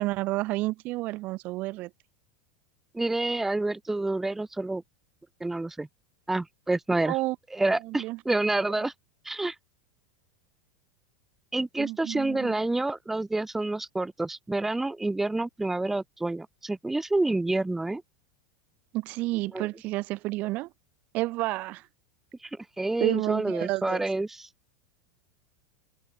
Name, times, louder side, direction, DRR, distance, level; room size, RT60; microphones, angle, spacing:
voice 1, 0.0-1.9 7.1-7.4 7.8-8.2 11.8-12.6 18.9-20.7 21.1-21.9 23.0-24.0, right 20 dB, 45° right, 0.6 m, -30 dB
voice 2, 2.9-4.8 5.4-5.9 6.3-7.2 7.5-8.9 9.2-9.6 11.5-18.0 19.5-19.7 22.4-22.5 22.8-24.5, right 2 dB, 10° right, 0.7 m, -28 dB
hypercardioid pair, 90°, 4 cm